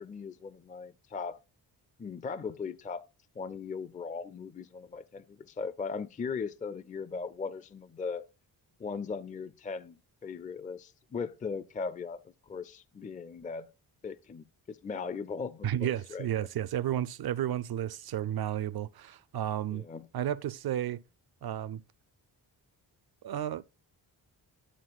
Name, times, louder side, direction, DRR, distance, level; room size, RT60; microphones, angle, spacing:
voice 1, 0.0-1.4 2.0-3.0 3.4-8.2 8.8-10.0 10.2-12.2 12.5-13.7 14.0-16.3 19.7-20.1, left 5 dB, 20° left, 0.4 m, -38 dB
voice 2, 15.6-19.8 20.1-21.0 21.4-21.8 23.2-23.6, right 11 dB, 55° right, 0.5 m, -32 dB
11.5 x 7.3 x 2.4 m
cardioid pair, 55°, 46 cm